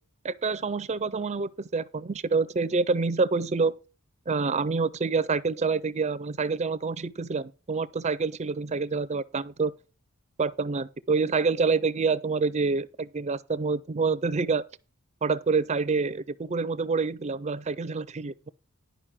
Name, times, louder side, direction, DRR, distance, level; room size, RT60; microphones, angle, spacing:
voice 1, 0.2-3.8 4.3-9.7 10.4-14.6 15.2-18.5, right 4 dB, 30° right, 0.4 m, -27 dB
11.5 x 5.2 x 6.0 m
head